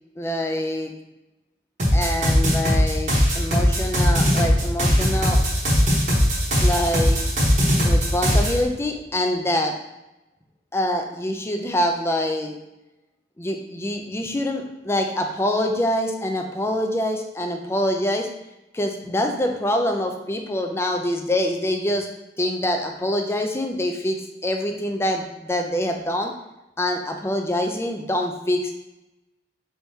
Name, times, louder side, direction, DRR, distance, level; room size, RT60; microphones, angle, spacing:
voice 1, 0.2-0.9 1.9-5.4 6.6-7.2 7.8-9.7 10.7-12.6 13.4-18.3 18.7-22.1 22.4-26.3 26.8-28.7, left 1 dB, 15° left, 4 dB, 0.4 m, -25 dB
sound 1, 1.8-8.6, equal, 45° right, 1.0 m, -19 dB
4.4 x 3.5 x 2.7 m, 0.95 s
head